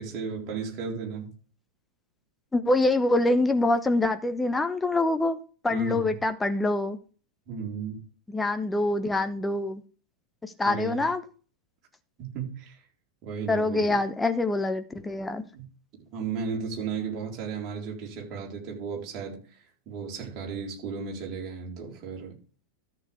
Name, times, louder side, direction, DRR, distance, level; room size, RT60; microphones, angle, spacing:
voice 1, 0.0-1.3 5.7-6.2 7.5-8.1 10.6-11.0 12.2-12.8 13.2-14.0 15.5-15.6 16.1-22.4, right 5 dB, 35° right, 4.0 m, -35 dB
voice 2, 2.5-5.4 5.6-7.0 8.3-9.8 10.4-11.2 13.5-15.4, left 2 dB, 10° left, 0.9 m, -25 dB
13.5 x 7.1 x 3.5 m
figure-of-eight pair, 90°, 0 cm